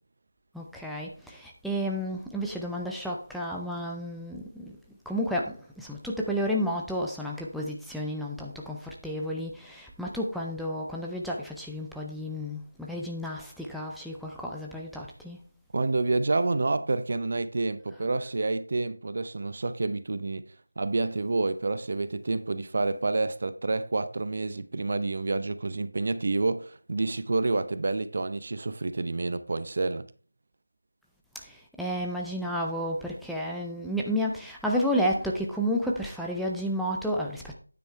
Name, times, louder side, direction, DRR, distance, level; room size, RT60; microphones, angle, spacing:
voice 1, 0.5-4.8 5.1-15.4 31.4-37.5, equal, ahead, 0.6 m, -31 dB
voice 2, 15.7-20.4 20.8-30.0, right 3 dB, 40° right, 0.7 m, -28 dB
9.4 x 7.9 x 3.2 m
figure-of-eight pair, 165°, 0 cm